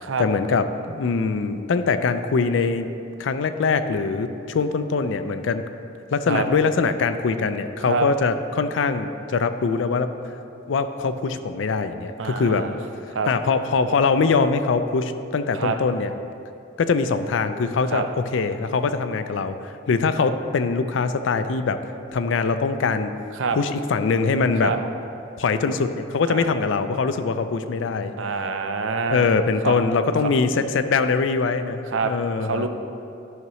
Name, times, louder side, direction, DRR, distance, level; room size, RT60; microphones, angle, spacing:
voice 1, 0.2-2.9 3.2-5.6 6.1-10.1 10.7-12.7 13.3-16.1 16.8-18.1 18.3-21.8 22.1-23.1 23.5-24.7 25.4-28.1 29.1-32.7, left 4 dB, 70° left, 10 dB, 0.4 m, -23 dB
voice 2, 12.2-12.8 13.1-13.3 15.5-15.8 17.9-18.1 23.4-23.6 24.6-24.8 26.3-26.5 28.2-29.3 29.6-29.8 31.9-32.1 32.4-32.7, right 4 dB, 80° right, 7 dB, 0.5 m, -26 dB
11.0 x 5.8 x 3.1 m, 2.8 s
head